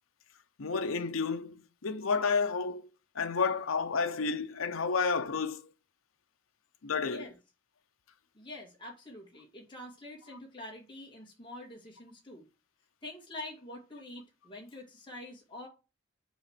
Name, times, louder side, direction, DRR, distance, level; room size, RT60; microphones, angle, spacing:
voice 1, 0.6-2.8 3.1-5.7 6.8-7.3, left 5 dB, 80° left, 0.7 m, -31 dB
voice 2, 7.0-7.3 8.3-12.4 13.0-15.7, left 1 dB, 25° left, 2.5 m, -46 dB
7.1 x 4.1 x 6.6 m
head